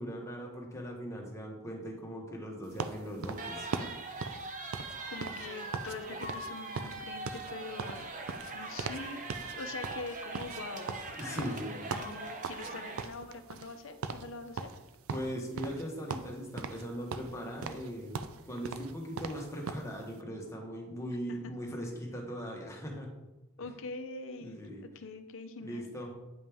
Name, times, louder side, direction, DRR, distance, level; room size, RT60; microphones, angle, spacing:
voice 1, 0.0-3.9 8.3-8.4 11.2-11.9 15.1-18.2 18.4-23.1 23.6-23.7 24.4-24.8 25.6-26.1, equal, 15° left, -1 dB, 1.3 m, -40 dB
sound 1, 2.8-6.0 6.2-6.5 6.7-9.0 9.3-9.5 9.8-12.7 13.0-13.8 14.0-14.3 14.6-15.8 16.1-16.8 17.1-19.9, right 5 dB, 65° right, 0.4 m, -39 dB
sound 2, 3.4-13.0, right 3 dB, 35° right, 0.7 m, -42 dB
voice 2, 4.7-8.1 8.5-9.2 9.6-10.9 11.2-11.5 11.8-14.7 21.3-21.5 23.6-25.9, left 3 dB, 60° left, 7 dB, 0.7 m, -44 dB
8.7 x 5.3 x 3.5 m, 1.0 s
head